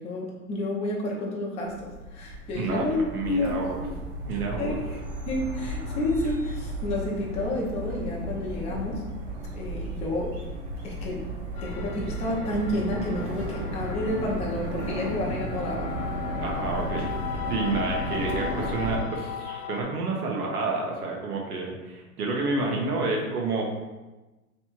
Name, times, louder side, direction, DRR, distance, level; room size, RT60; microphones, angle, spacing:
voice 1, 0.0-3.0 3.3-3.9 4.6-5.0 5.3-9.0 9.5-10.4 10.8-11.2 11.6-15.9, left 1 dB, 15° left, -2 dB, 0.6 m, -30 dB
sound 1, 1.6-19.0, right 1 dB, 50° right, 1.2 m, -34 dB
voice 2, 2.5-3.8 4.2-4.8 16.4-17.1 17.5-23.6, right 3 dB, 85° right, -1 dB, 1.3 m, -29 dB
sound 2, 11.5-19.8, left 9 dB, 70° left, 1.2 m, -38 dB
3.3 x 3.0 x 4.5 m, 1.1 s
hypercardioid pair, 135°, 44 cm